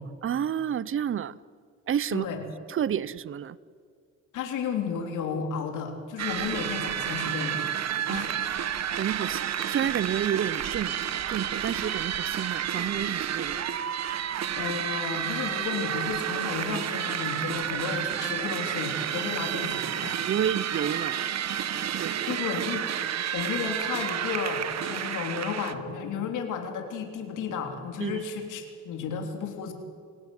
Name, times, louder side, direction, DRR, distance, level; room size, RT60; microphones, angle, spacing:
voice 1, 0.2-1.3 1.9-2.3 2.7-3.6 8.1-8.3 8.9-11.0 11.3-13.6 20.2-21.2 22.0-22.3 23.0-23.1 28.0-28.2, right 9 dB, 45° right, 0.7 m, -30 dB
voice 2, 2.1-2.4 4.3-7.6 8.1-8.3 14.5-20.3 21.8-21.9 22.3-22.8 23.1-29.7, left 6 dB, 85° left, 3.5 m, -33 dB
sound 1, 6.2-25.7, right 9 dB, 60° right, 1.3 m, -30 dB
28.5 x 17.0 x 9.4 m
cardioid pair, 90°, 30 cm